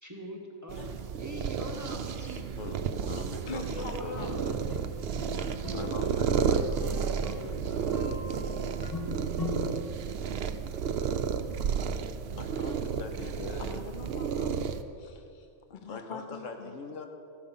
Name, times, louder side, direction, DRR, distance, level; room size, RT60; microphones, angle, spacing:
voice 1, 0.0-2.5 3.7-4.5, equal, 15° right, 0 dB, 1.4 m, -41 dB
sound 1, 0.7-14.8, right 7 dB, 60° right, 0.8 m, -32 dB
voice 2, 2.6-4.3 5.7-8.0 12.4-13.9 15.9-17.1, left 3 dB, 90° left, 5 dB, 1.5 m, -42 dB
voice 3, 3.5-4.7 5.1-5.5 13.6-16.8, left 4 dB, 50° left, 6 dB, 0.6 m, -44 dB
sound 2, 3.9-9.9, left 1 dB, 20° left, 1.0 m, -39 dB
14.0 x 11.0 x 5.6 m, 2.5 s
omnidirectional pair, 1.3 m